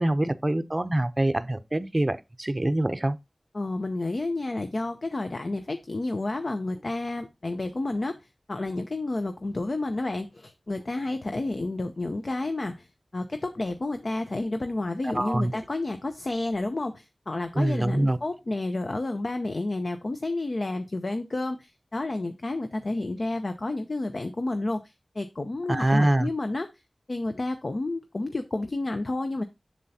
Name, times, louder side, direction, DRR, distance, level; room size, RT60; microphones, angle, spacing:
voice 1, 0.0-3.2 15.0-15.5 17.6-18.2 25.7-26.3, right 1 dB, 30° right, 0.6 m, -25 dB
voice 2, 3.5-8.2 8.5-12.9 13.1-26.7 27.1-29.4, left 2 dB, 60° left, 0.6 m, -30 dB
7.3 x 6.7 x 2.7 m
wide cardioid pair, 65°, 0 cm